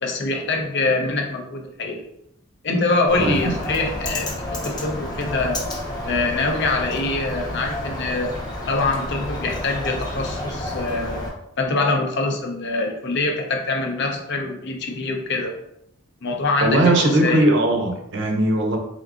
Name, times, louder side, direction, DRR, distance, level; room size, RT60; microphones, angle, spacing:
voice 1, 0.0-2.0 2.6-4.3 4.6-5.6 6.0-8.4 8.7-11.2 11.6-15.5 16.2-17.5, left 3 dB, 55° left, 3 dB, 0.6 m, -24 dB
Bird, 3.1-11.3, left 1 dB, 20° left, 0.7 m, -30 dB
voice 2, 3.2-3.5 16.6-18.8, right 1 dB, 60° right, 3 dB, 0.6 m, -19 dB
3.7 x 3.6 x 2.4 m, 0.78 s
head